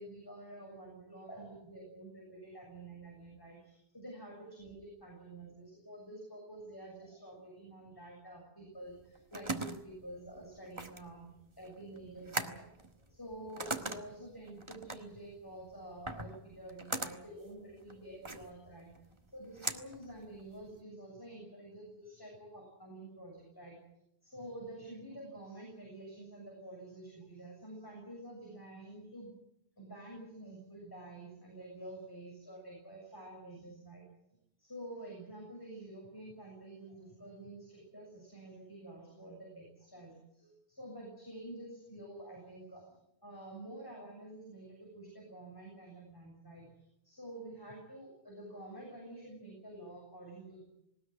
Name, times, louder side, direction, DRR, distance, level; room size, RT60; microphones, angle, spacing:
voice 1, 0.0-11.3 11.6-12.8 13.1-18.9 19.3-23.8 24.2-29.3 29.8-34.0 34.6-42.8 43.2-46.7 47.0-50.7, right 1 dB, 20° left, -2 dB, 7.1 m, -49 dB
sound 1, 8.9-20.8, right 2 dB, 25° right, 1.6 m, -42 dB
19.5 x 19.5 x 9.7 m, 0.83 s
omnidirectional pair, 1.1 m